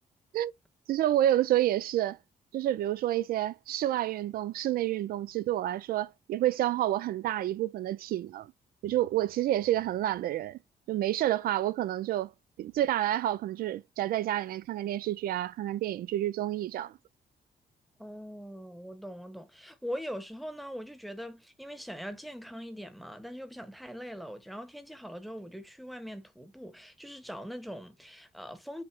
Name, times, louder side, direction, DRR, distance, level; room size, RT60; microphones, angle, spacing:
voice 1, 0.9-2.2 2.5-8.5 8.8-10.6 10.9-12.3 12.6-17.0, right 13 dB, 85° right, 0.4 m, -29 dB
voice 2, 18.0-28.8, equal, ahead, 0.9 m, -42 dB
5.8 x 2.0 x 4.5 m
cardioid pair, 115°, 15 cm